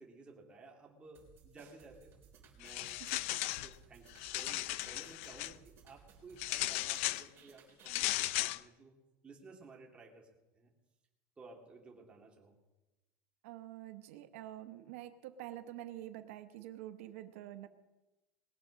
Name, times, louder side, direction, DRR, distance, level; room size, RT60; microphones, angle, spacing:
voice 1, 0.0-2.1 2.5-3.0 3.4-8.9 9.2-10.7 11.4-12.5, right 3 dB, 15° right, -1 dB, 2.3 m, -56 dB
sound 1, 1.1-8.0, right 6 dB, 30° right, 3.6 m, -61 dB
sound 2, 2.6-3.7 4.1-5.5 6.4-7.3 7.9-8.6, left 17 dB, 75° left, 0.4 m, -36 dB
voice 2, 13.4-17.7, right 13 dB, 85° right, 9 dB, 0.9 m, -47 dB
20.5 x 7.4 x 6.3 m, 1.1 s
cardioid pair, 155°, 7 cm